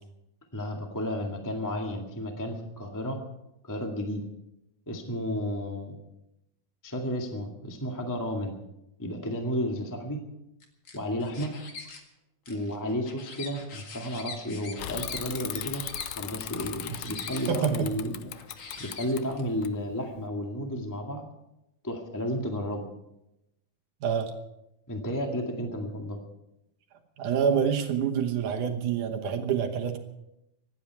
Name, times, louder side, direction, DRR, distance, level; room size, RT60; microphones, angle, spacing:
voice 1, 0.5-3.2 3.6-4.2 4.9-6.0 6.8-8.5 9.0-10.2 10.9-11.5 12.5-15.8 16.1-18.1 18.8-21.2 21.8-22.9 24.9-26.2, equal, 10° left, 2 dB, 0.9 m, -32 dB
sound 1, 10.6-12.0 12.5-16.1 16.6-17.7 18.3-19.4, left 4 dB, 40° left, 2.2 m, -43 dB
Bicycle / Mechanisms, 14.8-20.2, left 13 dB, 90° left, 1.6 m, -38 dB
voice 2, 17.5-17.9 24.0-24.3 27.2-30.0, right 7 dB, 65° right, 3 dB, 2.4 m, -27 dB
25.0 x 11.0 x 4.8 m, 0.87 s
omnidirectional pair, 4.2 m